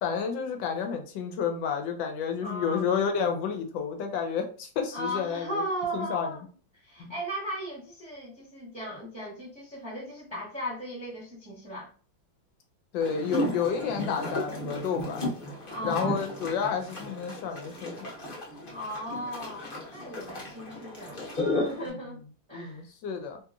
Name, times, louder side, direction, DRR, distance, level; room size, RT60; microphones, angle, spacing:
voice 1, 0.0-5.6 5.9-6.4 7.0-7.2 12.9-15.2 15.8-18.1 21.9-22.0 22.5-23.4, left 6 dB, 85° left, 1.4 m, -30 dB
voice 2, 2.4-2.9 4.9-6.4 6.7-11.9 15.7-16.2 18.7-21.2 21.5-22.2 22.5-22.8, equal, 25° right, 0.6 m, -36 dB
sound 1, 13.0-21.9, left 1 dB, 40° left, 0.8 m, -34 dB
2.9 x 2.9 x 2.4 m
omnidirectional pair, 2.0 m